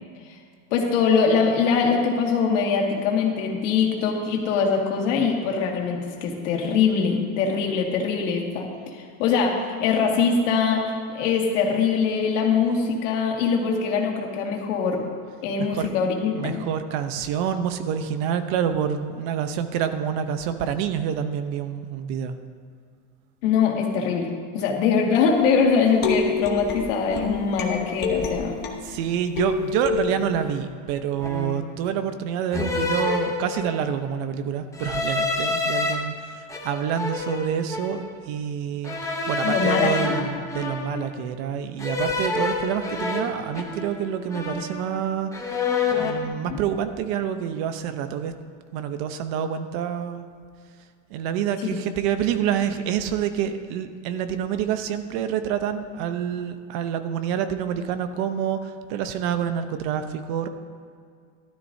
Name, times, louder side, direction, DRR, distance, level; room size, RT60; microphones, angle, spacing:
voice 1, 0.7-15.0 15.4-16.6 23.4-28.6 39.4-40.2 46.5-46.6 51.6-51.8, left 5 dB, 90° left, 0 dB, 2.1 m, -23 dB
voice 2, 16.3-22.3 28.8-45.3 46.0-48.3 48.7-50.3 51.1-60.5, right 8 dB, 60° right, 9 dB, 0.9 m, -27 dB
sound 1, 25.4-28.9 29.4-30.6, left 5 dB, 25° left, 1.1 m, -28 dB
sound 2, 30.1-30.4 31.2-31.8 32.5-33.9 34.7-35.9 36.5-38.1 38.8-41.2 41.8-44.1 44.3-45.0 45.3-46.2, left 3 dB, 10° left, 0.8 m, -28 dB
15.0 x 12.5 x 2.7 m, 2.2 s
cardioid pair, 160°, 36 cm